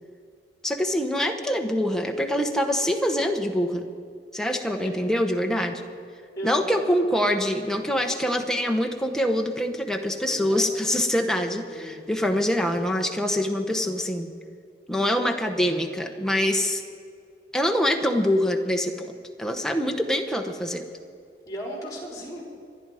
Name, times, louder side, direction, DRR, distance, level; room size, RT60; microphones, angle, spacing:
voice 1, 0.6-3.8 4.3-5.8 6.4-14.3 14.9-16.8 17.5-20.8, equal, 5° left, 3 dB, 0.9 m, -25 dB
voice 2, 4.6-4.9 6.4-6.9 7.6-7.9 10.3-10.6 11.7-12.0 21.5-22.4, equal, 20° left, -2 dB, 4.1 m, -36 dB
25.5 x 10.5 x 4.9 m, 2.2 s
head